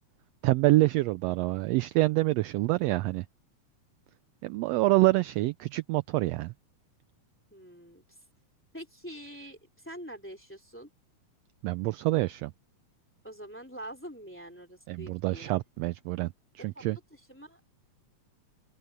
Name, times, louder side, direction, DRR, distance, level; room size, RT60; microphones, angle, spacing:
voice 1, 0.4-3.2 4.4-6.5 11.6-12.5 14.9-17.0, right 19 dB, 85° right, 1.5 m, -26 dB
voice 2, 7.5-8.0 8.7-10.9 13.2-15.6 16.6-16.8 17.1-17.6, right 1 dB, 5° left, 2.7 m, -45 dB
open air
omnidirectional pair, 3.4 m